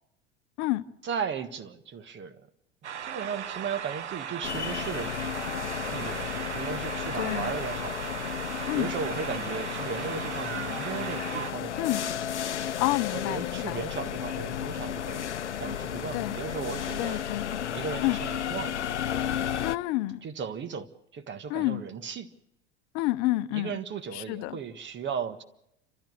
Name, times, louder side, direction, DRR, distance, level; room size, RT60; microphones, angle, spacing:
voice 1, 1.0-2.4 3.0-5.1 5.9-8.0 8.7-12.0 13.1-15.3 15.6-17.2 17.7-18.9 20.2-22.3 23.5-25.4, right 6 dB, 35° right, 1.6 m, -36 dB
sound 1, 2.8-11.5, right 8 dB, 90° right, 0.7 m, -37 dB
sound 2, 4.4-19.8, left 9 dB, 90° left, 0.6 m, -33 dB
voice 2, 7.1-7.5 8.7-8.9 11.8-12.0 12.8-13.8 16.1-16.4 17.0-17.5 18.0-18.2 19.6-20.2 21.5-21.8 22.9-23.8 24.1-24.6, left 18 dB, 50° left, 0.9 m, -29 dB
30.0 x 13.5 x 6.6 m
hypercardioid pair, 85°, 34 cm